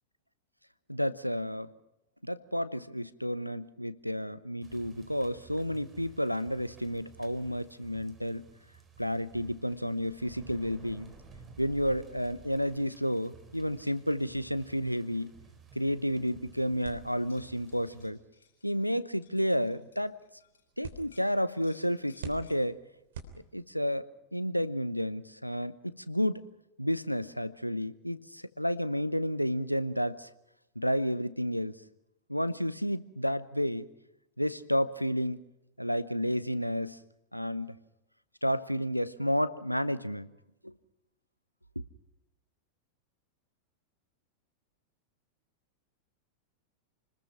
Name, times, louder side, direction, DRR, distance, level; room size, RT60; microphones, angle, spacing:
voice 1, 0.9-1.7 2.2-8.5 9.0-11.1 11.6-15.3 15.7-18.2 18.6-20.2 20.8-22.8 23.5-26.4 26.8-30.3 30.8-31.7 32.3-33.9 34.4-35.4 35.8-37.0 37.3-37.8 38.4-40.3 40.6-40.7, equal, 90° left, 15 dB, 0.9 m, -31 dB
sound 1, 4.6-18.1, right 4 dB, 20° right, 4.2 m, -54 dB
sound 2, 16.8-24.0, right 5 dB, 60° right, 3.3 m, -49 dB
sound 3, 17.2-20.6 21.0-22.6, left 5 dB, 70° left, 7.8 m, -63 dB
28.5 x 20.0 x 5.7 m, 0.90 s
figure-of-eight pair, 90°, 0 cm